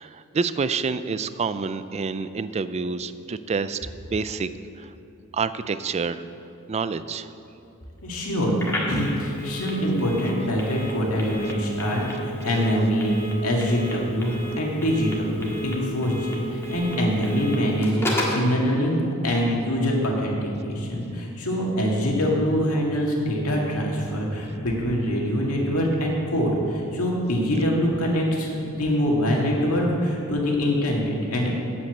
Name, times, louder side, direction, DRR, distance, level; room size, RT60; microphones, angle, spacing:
voice 1, 0.0-3.8 4.1-4.5 4.8-4.9 5.3-6.2 6.7-7.3, right 5 dB, 30° right, 13 dB, 0.4 m, -27 dB
voice 2, 8.0-8.6 8.9-13.2 13.4-31.6, equal, 75° left, -2 dB, 2.1 m, -24 dB
Telephone, 8.6-18.4, left 1 dB, 10° left, 1.7 m, -33 dB
8.6 x 7.9 x 7.9 m, 2.7 s
head